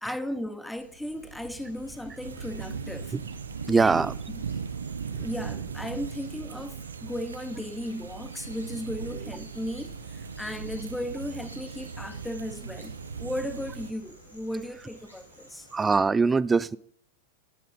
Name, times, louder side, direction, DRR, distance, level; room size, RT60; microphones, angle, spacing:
voice 1, 0.0-3.1 3.7-4.0 4.3-4.4 5.1-15.7, left 1 dB, 5° left, 0.8 m, -36 dB
sound 1, 0.7-16.0, right 1 dB, 90° left, 4.3 m, -50 dB
sound 2, 2.2-13.9, right 6 dB, 70° right, 0.7 m, -38 dB
voice 2, 3.7-4.1 15.7-16.8, right 4 dB, 15° right, 0.4 m, -22 dB
23.5 x 8.4 x 3.7 m
figure-of-eight pair, 90°, 0 cm